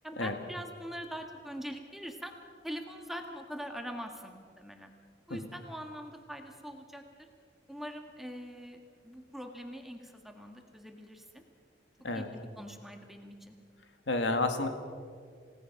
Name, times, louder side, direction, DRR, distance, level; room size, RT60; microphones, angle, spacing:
voice 1, 0.0-2.3 2.6-4.9 5.3-7.3 7.7-11.4 12.1-13.5, equal, ahead, 3 dB, 1.7 m, -43 dB
voice 2, 14.1-14.7, left 2 dB, 85° left, 6 dB, 1.9 m, -30 dB
28.5 x 17.5 x 5.9 m, 2.1 s
head